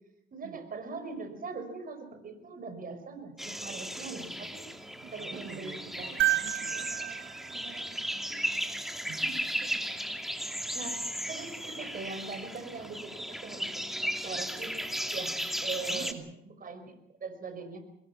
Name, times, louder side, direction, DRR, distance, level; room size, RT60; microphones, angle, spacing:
voice 1, 0.3-4.6 5.1-6.1 6.7-6.8 9.2-13.7 14.0-14.7 15.1-16.1 16.4-16.9 17.2-17.8, right 4 dB, 45° right, 8 dB, 5.4 m, -42 dB
sound 1, 3.4-16.1, equal, ahead, 2.5 m, -36 dB
voice 2, 4.7-8.2 9.0-9.3 15.9-16.3, right 8 dB, 85° right, 4 dB, 2.3 m, -48 dB
sound 2, 6.2-8.5 10.5-10.6, right 15 dB, 70° right, 0.7 m, -32 dB
25.5 x 21.0 x 5.9 m, 0.82 s
cardioid pair, 90°, 20 cm